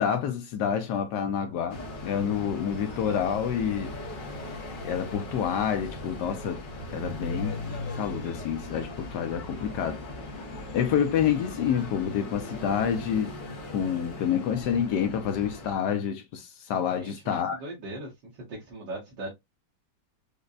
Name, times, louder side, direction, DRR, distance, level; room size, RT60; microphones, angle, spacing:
voice 1, 0.0-3.9 4.8-6.6 6.9-7.5 7.9-10.0 10.7-13.3 13.7-17.6, left 8 dB, 70° left, 1.0 m, -28 dB
sound 1, 1.7-15.7, left 2 dB, 40° left, 0.7 m, -38 dB
voice 2, 7.0-7.4 17.0-19.3, right 1 dB, 70° right, 1.6 m, -40 dB
5.2 x 2.1 x 2.3 m
omnidirectional pair, 2.1 m